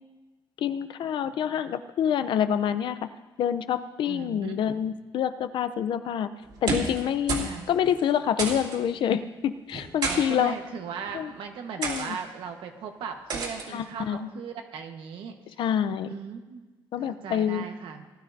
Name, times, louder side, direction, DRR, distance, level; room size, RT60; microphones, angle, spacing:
voice 1, 0.6-3.0 3.4-6.3 6.6-10.5 11.1-11.3 11.8-12.2 13.7-14.3 15.6-16.1 16.9-17.6, left 9 dB, 70° left, 11 dB, 0.6 m, -27 dB
voice 2, 4.0-4.9 7.3-7.7 10.0-15.3 16.1-16.6 17.0-18.0, right 6 dB, 90° right, 4 dB, 1.3 m, -38 dB
sound 1, 6.5-7.0 7.3-7.5 7.8-7.9 8.4-8.8 9.7-10.2 11.0-11.2 11.8-12.1 13.3-13.7, right 4 dB, 65° right, 2.6 m, -30 dB
18.5 x 11.5 x 2.7 m, 1.2 s
cardioid pair, 140°, 9 cm